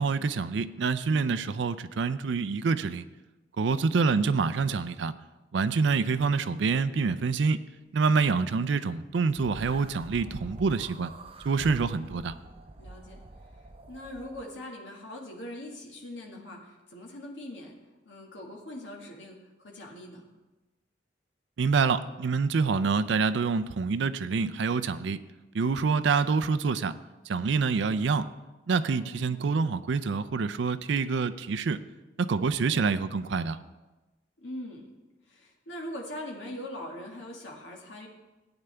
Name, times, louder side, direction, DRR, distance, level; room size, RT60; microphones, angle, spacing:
voice 1, 0.0-3.0 3.6-5.1 5.5-7.6 7.9-11.1 11.4-12.3 21.6-25.2 25.5-27.0 27.3-28.3 28.7-31.8 32.2-33.6, right 4 dB, 75° right, 13 dB, 0.4 m, -26 dB
sound 1, 9.3-14.4, right 2 dB, 30° right, 0.7 m, -45 dB
voice 2, 12.0-12.5 12.8-13.2 13.9-17.7 18.1-20.3 28.8-29.6 32.7-32.8 34.4-34.9 35.3-38.1, left 1 dB, 85° left, 0 dB, 1.8 m, -42 dB
15.0 x 8.9 x 3.4 m, 1.1 s
head